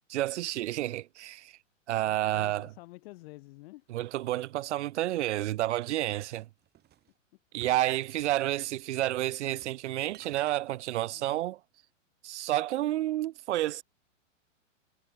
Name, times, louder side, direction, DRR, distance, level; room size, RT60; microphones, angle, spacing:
voice 1, 0.1-1.5 1.9-2.7 3.9-6.5 7.5-11.6 12.2-13.8, right 15 dB, 60° right, 1.2 m, -30 dB
voice 2, 2.0-3.9 11.1-11.4, left 21 dB, 50° left, 6.3 m, -50 dB
sound 1, 5.8-7.1 7.6-8.6 9.5-9.8 10.1-10.6, right 12 dB, 25° right, 7.4 m, -56 dB
hypercardioid pair, 140°, 39 cm